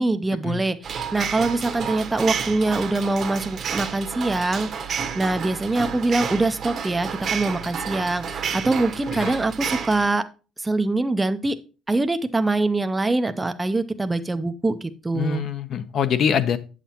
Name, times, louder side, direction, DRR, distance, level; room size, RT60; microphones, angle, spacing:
voice 1, 0.0-10.2 10.6-11.6 11.9-15.4, right 2 dB, 10° right, 9 dB, 0.5 m, -24 dB
sound 1, 0.8-10.1, right 7 dB, 45° right, 1.0 m, -30 dB
voice 2, 15.1-16.6, left 7 dB, 50° left, 13 dB, 0.7 m, -24 dB
8.0 x 7.4 x 2.9 m, 0.33 s
cardioid pair, 125°, 0 cm